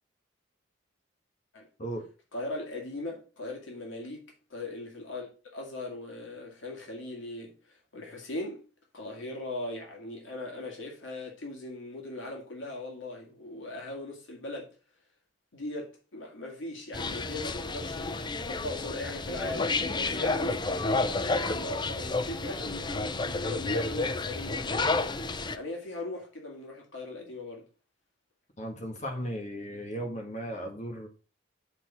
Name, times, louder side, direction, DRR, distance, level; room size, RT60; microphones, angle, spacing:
voice 1, 2.3-8.6 8.9-14.7 15.5-27.7, left 2 dB, 80° left, 2.2 m, -39 dB
sound 1, 16.9-25.6, left 3 dB, 25° left, 0.5 m, -31 dB
voice 2, 28.6-31.1, equal, 40° left, 1.7 m, -36 dB
6.7 x 4.3 x 6.0 m
head